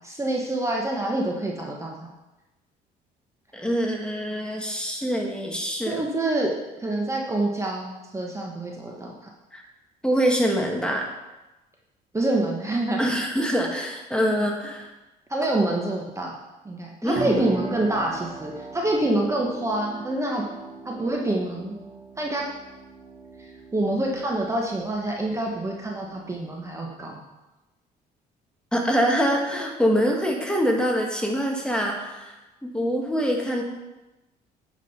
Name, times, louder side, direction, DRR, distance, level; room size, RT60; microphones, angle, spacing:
voice 1, 0.0-2.0 5.9-6.5 6.8-9.1 12.1-13.0 14.2-14.4 15.3-16.4 16.6-20.4 20.8-21.7 22.2-22.4 23.7-27.2, right 1 dB, 15° right, -1 dB, 1.3 m, -26 dB
voice 2, 3.5-6.0 9.5-9.6 10.0-11.1 13.0-14.9 17.0-17.5 28.7-32.4 32.6-33.6, equal, 5° left, 0 dB, 1.5 m, -24 dB
sound 1, 17.2-26.9, right 4 dB, 40° right, 1.4 m, -40 dB
9.2 x 4.9 x 5.8 m, 1.0 s
cardioid pair, 110°, 17 cm